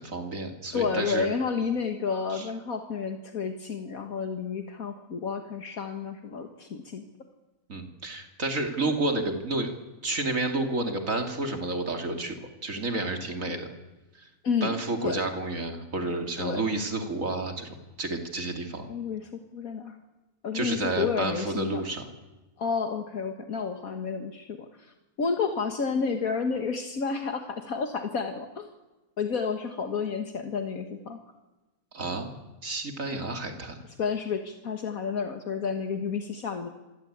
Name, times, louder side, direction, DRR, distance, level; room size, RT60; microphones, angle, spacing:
voice 1, 0.0-1.3 2.3-2.5 7.7-9.7 10.0-12.4 12.6-13.7 14.6-17.7 18.0-18.9 20.5-22.0 31.9-32.3 32.6-33.8, right 2 dB, 60° right, 4 dB, 3.1 m, -30 dB
voice 2, 0.7-7.1 14.4-14.7 15.0-15.2 16.4-16.6 18.9-20.0 20.4-21.8 22.6-24.9 25.2-28.7 29.2-31.2 34.0-36.7, left 5 dB, 70° left, 5 dB, 2.0 m, -30 dB
27.5 x 23.5 x 8.8 m, 1.1 s
omnidirectional pair, 1.6 m